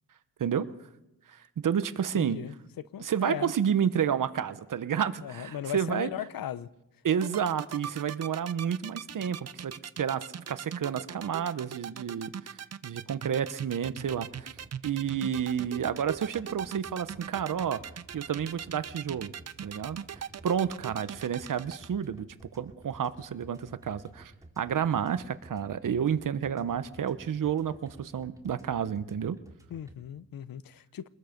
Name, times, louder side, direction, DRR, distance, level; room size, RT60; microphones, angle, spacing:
voice 1, 1.3-2.4 3.0-6.1 7.0-9.7 10.0-12.3 12.8-14.5 14.8-17.8 18.1-19.3 19.6-22.3 22.5-29.4, right 8 dB, 65° right, 1.1 m, -30 dB
voice 2, 2.1-2.5 2.9-3.5 5.2-6.7 29.7-31.1, left 10 dB, 80° left, 0.8 m, -37 dB
sound 1, 7.1-21.9, right 8 dB, 50° right, 0.7 m, -40 dB
sound 2, 13.8-29.9, right 2 dB, 10° right, 2.8 m, -52 dB
23.5 x 21.0 x 5.3 m
cardioid pair, 95°, 34 cm